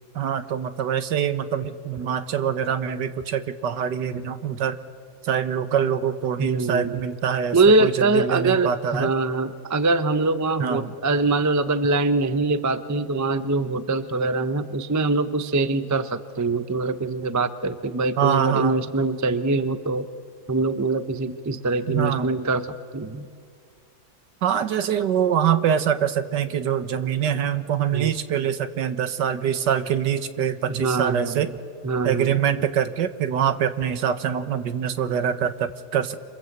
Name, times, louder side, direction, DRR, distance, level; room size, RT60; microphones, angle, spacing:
voice 1, 0.1-4.8 5.2-9.1 10.6-10.9 18.2-18.8 21.9-22.3 24.4-31.5 32.0-36.2, right 8 dB, 75° right, 11 dB, 1.7 m, -24 dB
voice 2, 6.4-7.0 7.5-20.1 20.5-22.7 22.9-23.3 27.9-28.1 30.7-31.5 31.8-32.4, right 3 dB, 20° right, 11 dB, 0.4 m, -23 dB
27.5 x 26.5 x 8.0 m, 2.1 s
omnidirectional pair, 1.9 m